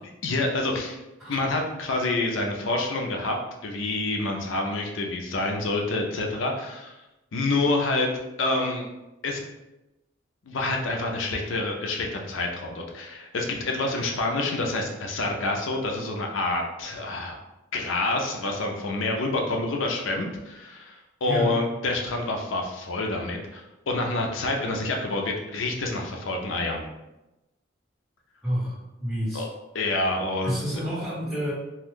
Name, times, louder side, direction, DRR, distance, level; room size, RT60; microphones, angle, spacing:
voice 1, 0.2-1.0 1.3-3.4 3.6-7.0 7.3-8.1 8.4-8.9 9.2-9.4 10.4-17.4 17.7-26.8 29.3-29.5 29.7-30.8, left 2 dB, 80° left, 2 dB, 0.5 m, -27 dB
voice 2, 28.4-29.4 30.4-31.5, equal, ahead, -11 dB, 1.3 m, -29 dB
2.5 x 2.3 x 3.5 m, 0.99 s
head